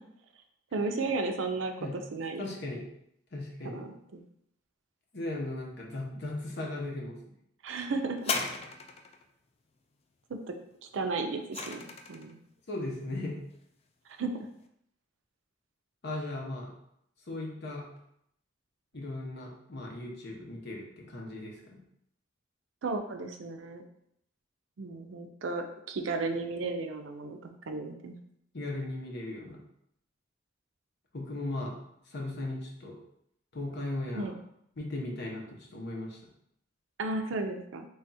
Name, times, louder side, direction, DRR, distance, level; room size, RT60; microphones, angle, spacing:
voice 1, 0.7-2.4 3.6-4.2 7.6-8.2 10.8-12.4 14.2-14.5 22.8-23.8 24.8-28.2 34.2-34.3 37.0-37.9, right 3 dB, 75° right, 5 dB, 0.5 m, -34 dB
voice 2, 2.4-2.8 3.3-3.9 5.1-7.2 12.7-13.4 16.0-16.7 17.3-17.9 18.9-21.8 28.5-29.6 31.1-31.8 32.1-33.0 33.5-34.3 34.8-36.2, left 2 dB, 60° left, -1 dB, 0.9 m, -37 dB
sound 1, 8.2-9.2 10.9-12.3 13.1-13.2, left 4 dB, 30° left, 0.3 m, -35 dB
3.4 x 2.4 x 4.0 m, 0.73 s
head